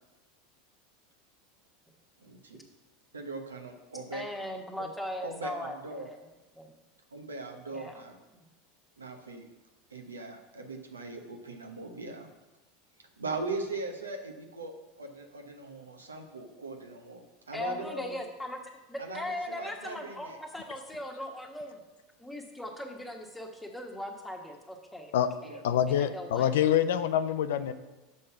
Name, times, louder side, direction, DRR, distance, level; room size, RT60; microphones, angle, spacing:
voice 1, 2.2-2.6 3.1-4.2 4.8-4.9 5.2-6.1 7.1-8.2 9.0-9.5 9.9-12.3 13.0-18.2 19.0-20.4 25.4-25.6, right 3 dB, 90° right, 4 dB, 0.9 m, -40 dB
voice 2, 4.1-6.2 6.5-6.7 7.7-8.0 8.3-8.4 17.5-18.6 18.9-21.8 22.2-25.1 25.4-25.6 25.9-26.5, left 1 dB, 5° left, 2 dB, 1.3 m, -39 dB
voice 3, 25.6-27.7, left 10 dB, 70° left, 12 dB, 0.4 m, -26 dB
6.4 x 5.4 x 5.7 m, 1.1 s
hypercardioid pair, 85°, 0 cm